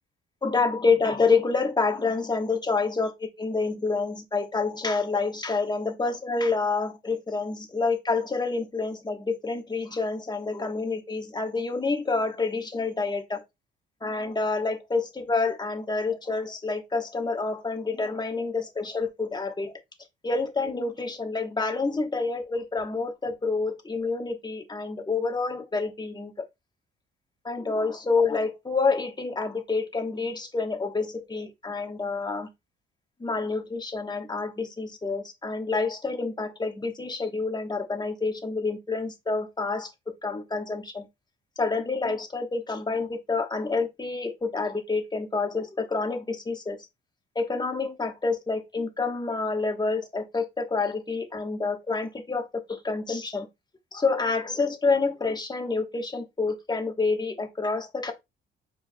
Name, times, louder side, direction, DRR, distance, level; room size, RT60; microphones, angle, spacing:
voice 1, 0.4-13.4 14.0-19.7 20.2-26.3 27.4-32.5 33.2-39.9 40.2-41.1 41.6-46.8 47.3-53.5 53.9-58.1, left 4 dB, 20° left, 1.2 m, -28 dB
4.7 x 4.6 x 2.3 m
cardioid pair, 90°, 20 cm